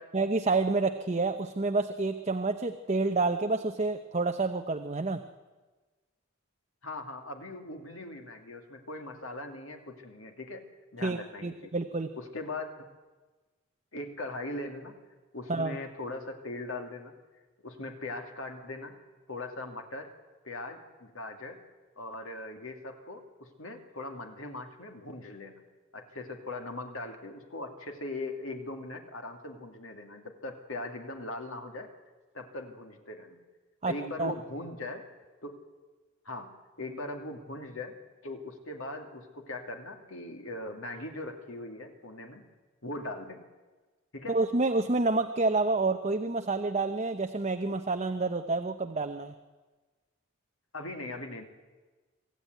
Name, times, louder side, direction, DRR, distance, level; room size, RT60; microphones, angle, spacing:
voice 1, 0.1-5.2 11.0-12.1 15.5-15.8 33.8-34.3 44.3-49.3, right 3 dB, 30° right, 7 dB, 0.8 m, -28 dB
voice 2, 6.8-10.6 10.9-11.7 12.1-12.9 13.9-15.0 15.3-17.1 17.6-18.9 19.3-20.1 20.4-21.6 22.0-25.6 25.9-31.9 32.3-33.4 33.8-35.0 35.4-35.6 36.2-37.9 38.2-42.4 42.8-43.4 44.1-44.4 50.7-51.4, left 2 dB, 70° left, 4 dB, 2.6 m, -40 dB
25.0 x 14.5 x 9.4 m, 1.3 s
head